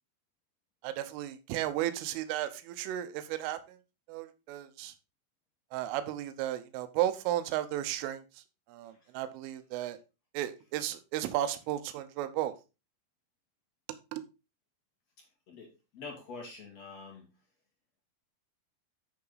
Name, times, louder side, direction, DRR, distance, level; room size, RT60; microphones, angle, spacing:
voice 1, 0.8-3.8 4.1-4.9 5.7-10.0 10.3-12.5 14.1-14.2, right 13 dB, 85° right, 3.3 m, -34 dB
voice 2, 15.9-17.3, left 4 dB, 50° left, 2.0 m, -45 dB
8.6 x 5.8 x 3.9 m
omnidirectional pair, 5.7 m